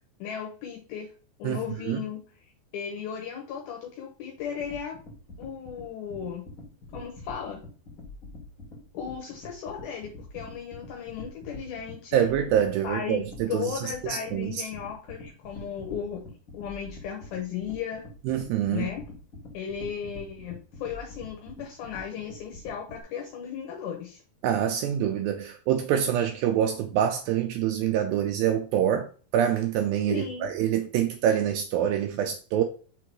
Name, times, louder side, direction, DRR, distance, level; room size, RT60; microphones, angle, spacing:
voice 1, 0.2-1.1 1.4-2.2 2.7-5.0 5.4-6.4 6.9-7.6 8.9-12.3 12.8-13.2 13.5-16.2 16.5-18.0 18.7-19.0 19.5-24.2 30.1-30.5, left 8 dB, 70° left, 2.7 m, -35 dB
sound 1, 4.4-23.0, left 2 dB, 35° left, 2.8 m, -44 dB
voice 2, 12.1-13.7 14.0-14.6 18.3-18.8 24.4-29.1 29.3-32.6, right 9 dB, 80° right, 2.1 m, -25 dB
6.0 x 3.7 x 4.5 m
omnidirectional pair, 4.7 m